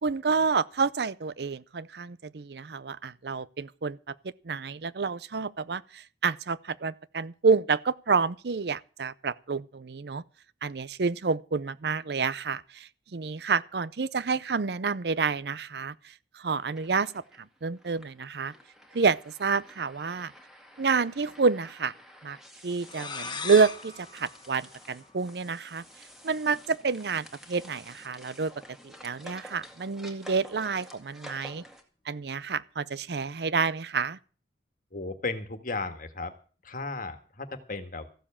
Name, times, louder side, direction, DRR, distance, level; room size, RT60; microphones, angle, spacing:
voice 1, 0.0-4.1 4.4-10.2 10.6-18.5 18.9-20.3 20.8-21.9 22.2-22.4 22.6-25.8 26.2-28.5 28.8-31.6 32.1-34.2, right 5 dB, 65° right, 0.6 m, -29 dB
sound 1, 16.5-31.8, equal, ahead, 2.0 m, -51 dB
sound 2, 22.8-25.4, left 5 dB, 25° left, 1.2 m, -39 dB
voice 2, 34.9-36.3 36.6-38.1, left 3 dB, 50° left, 1.7 m, -35 dB
15.0 x 7.3 x 8.7 m
head